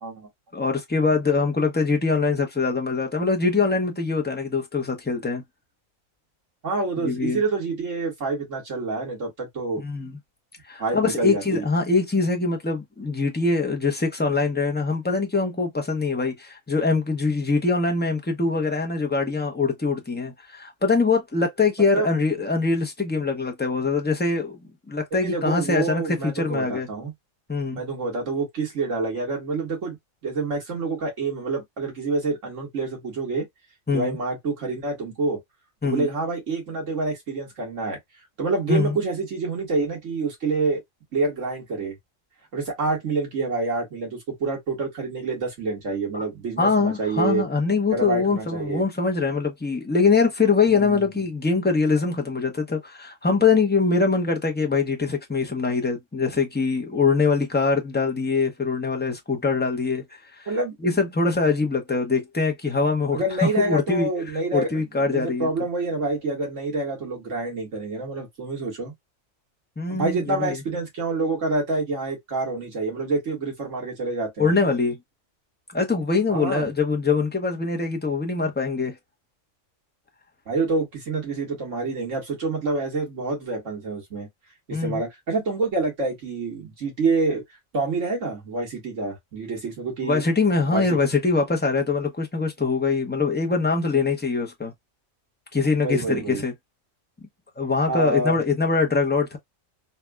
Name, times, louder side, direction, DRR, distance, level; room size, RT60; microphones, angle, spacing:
voice 1, 0.5-5.4 7.0-7.4 9.8-10.2 10.7-24.6 24.9-26.9 27.5-27.8 33.9-34.2 35.8-36.1 38.7-39.0 46.1-46.2 46.6-60.0 60.4-60.5 60.8-64.1 64.5-65.5 69.8-70.6 74.4-75.0 75.7-78.9 84.7-85.0 90.0-94.7 95.5-96.5 97.6-99.4, left 4 dB, 10° left, 0.6 m, -23 dB
voice 2, 6.6-9.8 10.8-11.6 21.9-22.1 25.1-27.1 27.7-30.0 30.2-33.5 33.9-35.4 35.8-38.0 38.4-40.8 41.1-42.0 42.5-47.4 47.9-48.8 50.7-51.0 60.5-60.8 63.1-68.9 69.9-74.5 76.3-76.7 80.5-84.3 84.7-87.4 87.7-90.2 90.7-90.8 95.8-96.4 97.9-98.4, right 3 dB, 65° right, 2.0 m, -27 dB
4.2 x 2.3 x 2.2 m
omnidirectional pair, 1.4 m